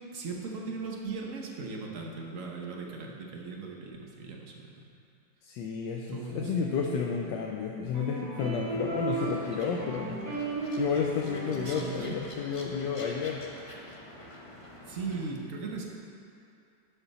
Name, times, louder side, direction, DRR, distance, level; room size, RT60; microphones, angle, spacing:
voice 1, 0.0-4.9 6.1-6.5 11.5-12.2 14.9-15.8, right 4 dB, 50° right, 0 dB, 1.2 m, -38 dB
voice 2, 5.4-10.2 10.8-13.4, left 6 dB, 80° left, 0 dB, 1.3 m, -31 dB
sound 1, 6.3-11.9, right 3 dB, 85° right, 3.2 m, -36 dB
sound 2, 8.5-15.3, left 1 dB, 40° left, 0.4 m, -47 dB
11.0 x 5.9 x 4.2 m, 2.5 s
omnidirectional pair, 2.0 m